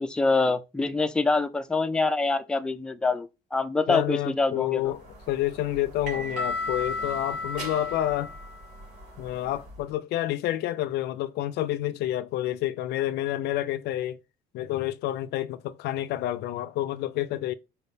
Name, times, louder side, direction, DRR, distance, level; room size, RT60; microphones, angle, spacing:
voice 1, 0.0-4.8, left 3 dB, 5° left, 0.3 m, -25 dB
voice 2, 3.9-8.3 9.2-14.2 14.5-17.5, left 13 dB, 75° left, 0.4 m, -29 dB
sound 1, 5.0-9.8, left 2 dB, 90° right, 2.4 m, -35 dB
4.3 x 3.4 x 2.7 m
cardioid pair, 110°, 17 cm